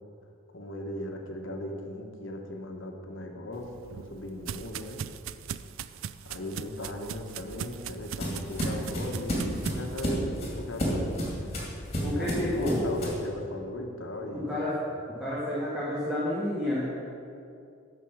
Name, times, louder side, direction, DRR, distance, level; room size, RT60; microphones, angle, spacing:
voice 1, 0.5-5.0 6.3-11.1 12.1-14.6, left 1 dB, 60° left, 2 dB, 1.2 m, -38 dB
sound 1, 3.5-10.1, right 8 dB, 70° right, 0.3 m, -40 dB
sound 2, 7.2-13.3, equal, 30° left, 2.4 m, -32 dB
voice 2, 12.0-12.9 14.3-14.7 15.2-16.8, left 1 dB, 5° right, -9 dB, 1.8 m, -30 dB
9.1 x 5.9 x 7.2 m, 2.5 s
head